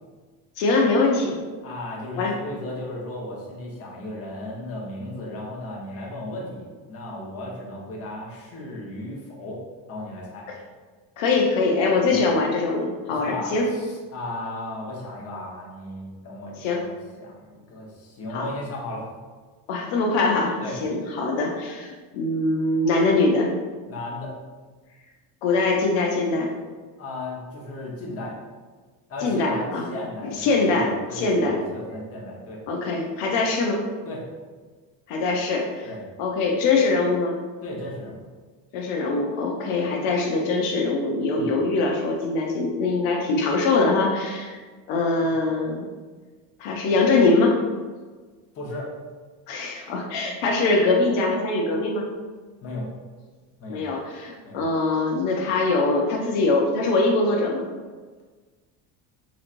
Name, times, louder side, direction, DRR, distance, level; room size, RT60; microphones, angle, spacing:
voice 1, 0.6-1.4 2.2-2.3 11.2-13.7 16.6-16.8 18.3-18.5 19.7-23.5 25.4-26.5 29.2-29.9 30.2-31.6 32.7-33.8 35.1-35.9 36.2-37.4 38.7-44.6 44.9-45.9 46.6-47.6 49.5-52.1 53.7-57.7, left 3 dB, 70° left, 0 dB, 0.7 m, -23 dB
voice 2, 1.6-9.6 9.9-10.5 12.1-12.2 13.1-19.1 20.6-20.7 23.9-24.3 27.0-28.4 29.1-32.6 34.1-34.2 35.8-36.0 37.6-38.3 41.3-41.5 45.2-45.3 48.5-48.9 52.6-52.9 53.6-53.8 54.4-54.6, left 1 dB, 30° left, -4 dB, 0.9 m, -35 dB
4.0 x 3.0 x 2.5 m, 1.4 s
cardioid pair, 145°, 46 cm